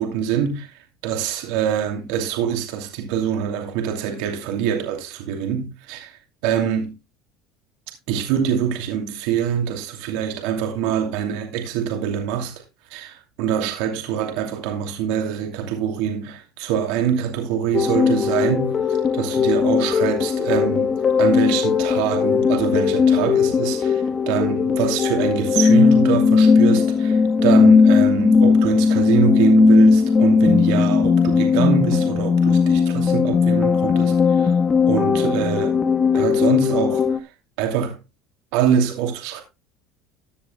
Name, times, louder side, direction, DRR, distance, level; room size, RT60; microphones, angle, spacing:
voice 1, 0.0-6.9 8.1-12.5 12.9-34.5 34.9-35.8 36.1-37.3 37.6-38.0 38.5-39.4, right 8 dB, 75° right, 2.6 m, -24 dB
sound 1, 17.7-37.2, left 5 dB, 30° left, 1.1 m, -17 dB
15.5 x 10.5 x 2.2 m
supercardioid pair, 115°, 0 cm